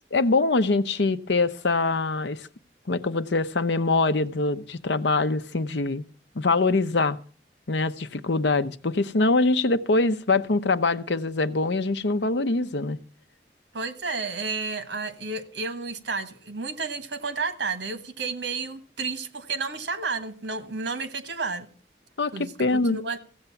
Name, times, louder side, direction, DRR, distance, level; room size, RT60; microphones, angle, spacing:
voice 1, 0.1-2.4 2.9-6.0 6.4-7.2 7.7-13.0 22.2-23.0, left 3 dB, 80° left, 0.8 m, -24 dB
voice 2, 13.7-21.7 22.3-23.2, right 4 dB, 90° right, 1.3 m, -31 dB
15.5 x 7.9 x 7.1 m
head